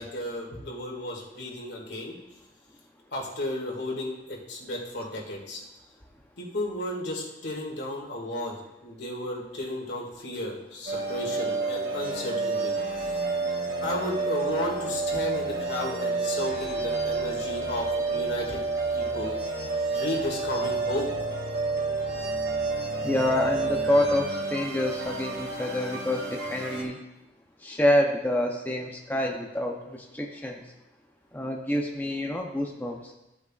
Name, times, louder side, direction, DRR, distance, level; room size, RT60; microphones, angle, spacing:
voice 1, 0.0-2.2 3.1-5.6 6.4-12.7 13.0-13.2 13.8-18.6 18.9-19.3 19.9-21.1, left 1 dB, 75° left, -1 dB, 2.1 m, -33 dB
sound 1, 10.9-26.8, right 3 dB, 60° right, 2.1 m, -30 dB
voice 2, 23.0-27.0 27.6-30.6 31.3-33.1, left 1 dB, 10° left, 0 dB, 0.7 m, -27 dB
14.5 x 8.1 x 2.4 m, 0.95 s
head